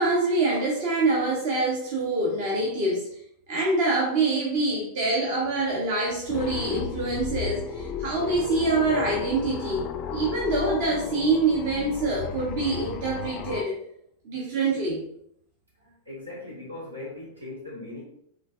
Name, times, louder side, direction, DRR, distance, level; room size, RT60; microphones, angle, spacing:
voice 1, 0.0-3.1 3.5-13.7 14.2-15.0, right 3 dB, 50° right, -3 dB, 0.9 m, -25 dB
sound 1, 6.3-13.6, left 9 dB, 35° left, 0.3 m, -34 dB
voice 2, 16.0-18.0, left 2 dB, 80° right, -4 dB, 1.5 m, -39 dB
4.9 x 3.2 x 2.5 m, 0.72 s
figure-of-eight pair, 90°, 0 cm